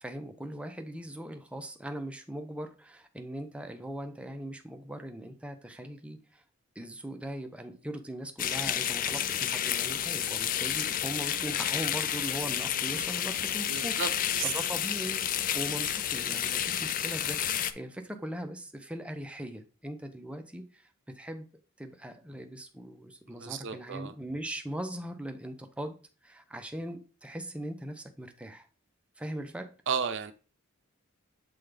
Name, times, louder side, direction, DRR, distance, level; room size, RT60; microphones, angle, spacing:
voice 1, 0.0-6.4 6.8-14.0 14.4-15.3 15.5-17.4 17.7-21.5 21.8-26.0 26.2-28.7 29.2-29.7, right 1 dB, 5° right, 5 dB, 0.6 m, -40 dB
sound 1, 8.4-17.7, left 10 dB, 40° left, 0.4 m, -30 dB
voice 2, 13.7-14.5 23.3-24.1 29.9-30.3, right 7 dB, 65° right, 9 dB, 0.6 m, -33 dB
7.7 x 3.7 x 3.3 m, 0.35 s
head